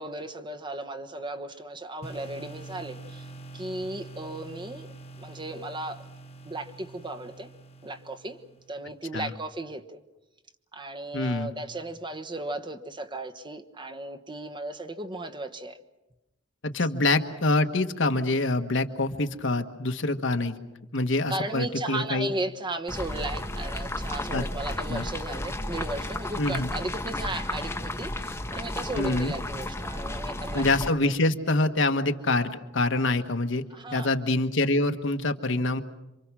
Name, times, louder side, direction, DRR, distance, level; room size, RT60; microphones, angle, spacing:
voice 1, 0.0-3.3 3.5-4.9 5.2-6.0 6.4-7.5 7.8-8.4 8.7-10.0 10.7-15.8 21.3-30.6 33.7-34.1, right 2 dB, 25° right, 1.2 m, -35 dB
sound 1, 2.0-8.8, right 2 dB, 35° left, 1.2 m, -45 dB
voice 2, 11.1-11.5 16.6-20.6 20.9-22.3 24.3-24.5 24.9-25.1 26.4-26.7 28.9-29.3 30.5-33.6 33.9-35.8, left 2 dB, 70° left, 1.4 m, -25 dB
sound 2, 22.9-30.9, left 1 dB, 15° left, 1.0 m, -33 dB
27.5 x 25.0 x 6.2 m
head